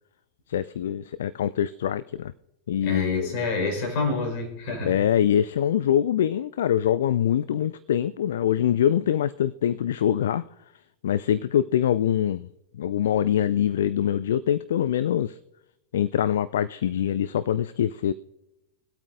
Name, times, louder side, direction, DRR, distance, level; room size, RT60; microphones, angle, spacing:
voice 1, 0.5-2.3 2.7-3.4 4.8-10.4 11.0-12.5 12.7-15.4 15.9-18.1, left 10 dB, 60° left, 16 dB, 0.3 m, -24 dB
voice 2, 2.8-5.0, left 4 dB, 45° left, 0 dB, 4.2 m, -27 dB
22.0 x 8.5 x 2.6 m, 0.93 s
figure-of-eight pair, 90°, 0 cm